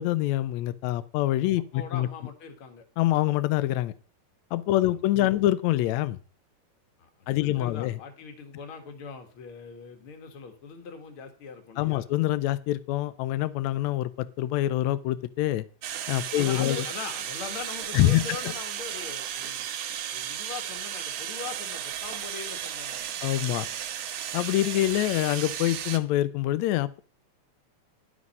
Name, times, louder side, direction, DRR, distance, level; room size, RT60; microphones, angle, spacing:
voice 1, 0.0-2.1 3.0-3.9 4.5-6.2 7.3-8.0 11.8-15.6 16.1-16.8 17.9-18.2 23.2-23.7 24.3-27.0, left 15 dB, 75° left, 15 dB, 1.9 m, -25 dB
voice 2, 1.7-2.8 4.7-5.5 7.0-12.0 16.4-19.7 20.1-23.1, left 5 dB, 50° left, 5 dB, 2.1 m, -41 dB
sound 1, 15.8-26.0, right 10 dB, 75° right, 1.2 m, -34 dB
11.0 x 6.0 x 5.4 m, 0.38 s
omnidirectional pair, 3.4 m